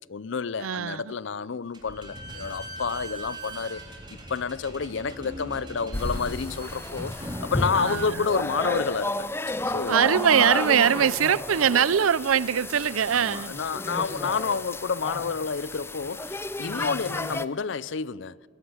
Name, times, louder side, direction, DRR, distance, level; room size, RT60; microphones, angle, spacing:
voice 1, 0.1-3.8 4.1-9.3 9.7-10.2 13.1-18.4, left 5 dB, 60° left, 0.5 m, -29 dB
voice 2, 0.6-1.1 7.7-8.2 9.9-13.5, right 8 dB, 90° right, 0.5 m, -22 dB
Slam / Squeak, 1.7-9.0, right 1 dB, 20° right, 3.6 m, -41 dB
sound 1, 5.9-17.5, left 2 dB, 10° left, 0.6 m, -32 dB
21.5 x 20.5 x 9.7 m
head